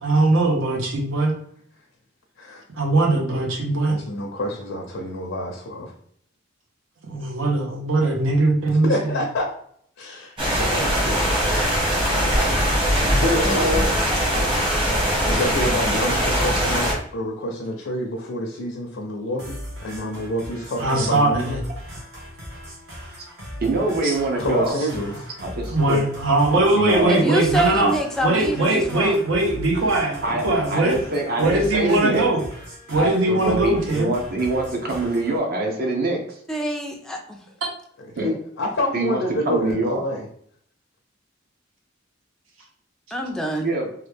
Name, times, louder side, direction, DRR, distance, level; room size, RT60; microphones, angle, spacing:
voice 1, 0.0-1.3 2.8-4.0 7.0-8.9 11.9-12.1 20.8-21.6 24.0-24.2 25.7-27.9 28.2-31.0 31.4-32.4 32.9-34.1, right 2 dB, 85° right, 1 dB, 0.8 m, -20 dB
voice 2, 3.9-5.9 8.8-9.5 10.0-11.9 13.0-14.0 15.3-21.6 24.4-25.3 38.0-40.3, left 1 dB, 75° left, -1 dB, 0.5 m, -27 dB
sound 1, 10.4-16.9, equal, 25° right, 1.1 m, -21 dB
voice 3, 13.4-13.8 27.1-29.2 36.5-37.4 43.1-43.7, equal, 5° left, 1 dB, 0.3 m, -26 dB
sound 2, 19.4-35.4, equal, 65° right, 1.2 m, -38 dB
voice 4, 23.6-24.8 25.4-26.0 26.7-27.2 30.2-32.3 32.9-36.2 38.2-38.4 38.9-40.0 43.6-43.9, right 2 dB, 50° right, 1 dB, 0.7 m, -24 dB
3.1 x 2.3 x 3.3 m, 0.64 s
head